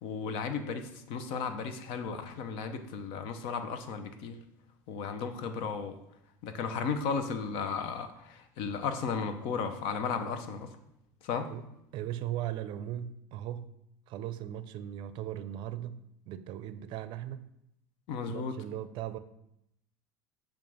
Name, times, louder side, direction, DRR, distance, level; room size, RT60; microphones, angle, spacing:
voice 1, 0.0-4.4 4.9-6.0 6.4-10.7 11.2-11.5 18.1-18.6, left 5 dB, 65° left, 0.7 m, -35 dB
voice 2, 11.5-13.7 14.1-17.5 18.3-19.2, right 12 dB, 55° right, 0.5 m, -38 dB
7.4 x 2.5 x 5.5 m
hypercardioid pair, 90°, 10 cm